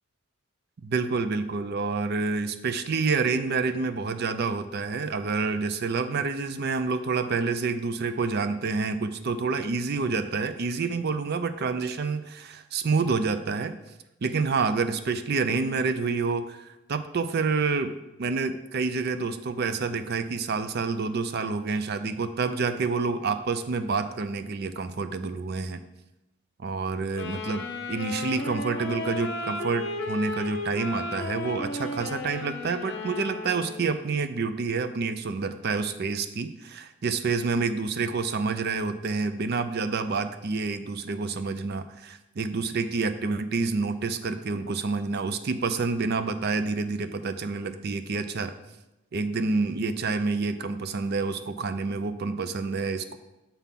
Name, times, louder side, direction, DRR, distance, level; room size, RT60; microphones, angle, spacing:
voice 1, 0.8-13.8 14.2-25.8 26.6-48.5 49.1-53.2, right 4 dB, 50° right, 11 dB, 0.4 m, -28 dB
Wind instrument woodwind instrument, 27.1-34.1, left 2 dB, 55° left, 0.7 m, -34 dB
7.0 x 3.6 x 5.7 m, 0.98 s
head